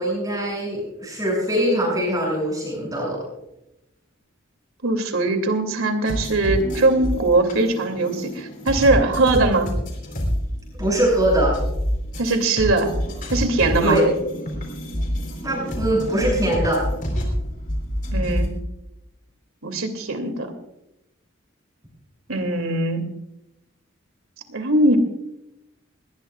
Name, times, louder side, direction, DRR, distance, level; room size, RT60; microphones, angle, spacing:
voice 1, 0.0-3.2 10.8-11.6 13.8-14.1 15.4-16.9, right 1 dB, 15° right, -3 dB, 6.9 m, -22 dB
voice 2, 4.8-9.7 12.2-12.9 13.3-14.0 18.1-18.5 19.6-20.5 22.3-23.1 24.5-25.0, right 2 dB, 80° right, 6 dB, 2.6 m, -21 dB
sound 1, 6.0-18.5, equal, 40° left, 3.8 m, -27 dB
20.5 x 19.0 x 2.4 m, 0.86 s
head